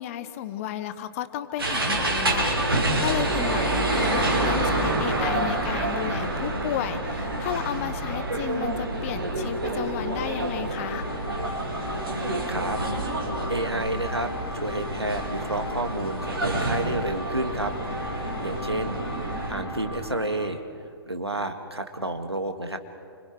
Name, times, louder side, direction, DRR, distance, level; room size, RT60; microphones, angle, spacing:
voice 1, 0.0-11.0, left 11 dB, 35° left, 11 dB, 1.1 m, -33 dB
sound 1, 1.6-19.5, right 2 dB, 65° right, 5.6 m, -28 dB
sound 2, 1.9-20.0, right 2 dB, 25° right, 3.5 m, -40 dB
sound 3, 10.8-20.6, left 2 dB, 70° left, 3.0 m, -37 dB
voice 2, 12.5-12.8 13.5-17.7 18.1-19.0 19.5-20.6 21.1-22.8, right 1 dB, 85° right, 6 dB, 2.0 m, -30 dB
29.5 x 25.5 x 4.8 m, 2.4 s
figure-of-eight pair, 120°, 13 cm